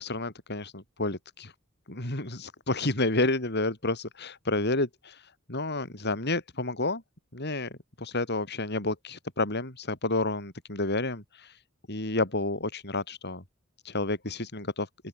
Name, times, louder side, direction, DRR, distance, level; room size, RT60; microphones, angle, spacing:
voice 1, 0.0-1.5 1.9-7.0 7.3-7.7 8.0-11.6 11.9-13.4 13.8-14.9, left 2 dB, 55° left, 5.9 m, -30 dB
open air
head